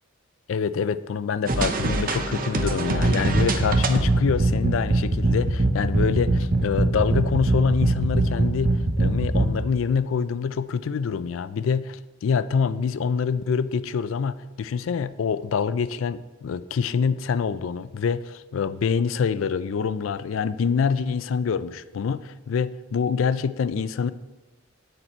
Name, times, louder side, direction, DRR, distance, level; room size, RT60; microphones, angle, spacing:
voice 1, 0.5-24.1, left 6 dB, 75° left, 15 dB, 0.4 m, -25 dB
sound 1, 1.5-9.5, right 2 dB, 45° right, 0.7 m, -22 dB
8.8 x 6.6 x 4.4 m, 1.1 s
head